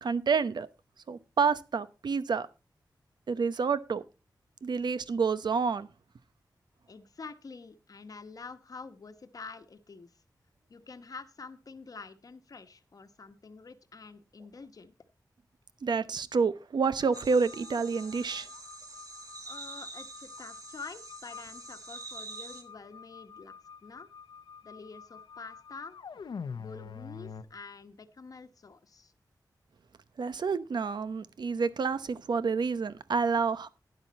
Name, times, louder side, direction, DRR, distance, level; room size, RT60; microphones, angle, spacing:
voice 1, 0.0-0.7 1.1-2.5 3.3-4.0 4.6-5.9 15.8-18.5 30.2-33.7, right 5 dB, 75° right, 0.8 m, -28 dB
voice 2, 6.9-10.1 10.7-14.9 19.4-24.1 24.6-26.0 26.5-29.1, left 4 dB, 55° left, 1.1 m, -47 dB
sound 1, 17.0-27.4, left 6 dB, 85° left, 0.8 m, -47 dB
sound 2, 17.1-22.6, right 3 dB, 55° right, 2.3 m, -46 dB
12.0 x 10.5 x 4.1 m
wide cardioid pair, 120°, 8 cm